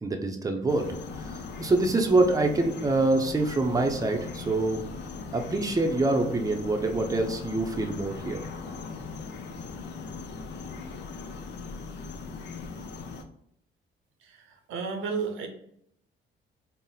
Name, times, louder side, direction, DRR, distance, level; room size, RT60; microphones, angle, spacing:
voice 1, 0.0-0.8 1.6-4.8 5.3-8.4, right 2 dB, 15° right, 3 dB, 0.6 m, -25 dB
sound 1, 0.7-13.2, left 4 dB, 60° left, 0.6 m, -39 dB
voice 2, 14.2-15.5, right 5 dB, 85° right, 5 dB, 0.8 m, -33 dB
4.1 x 2.1 x 3.9 m, 0.72 s
cardioid pair, 90°, 20 cm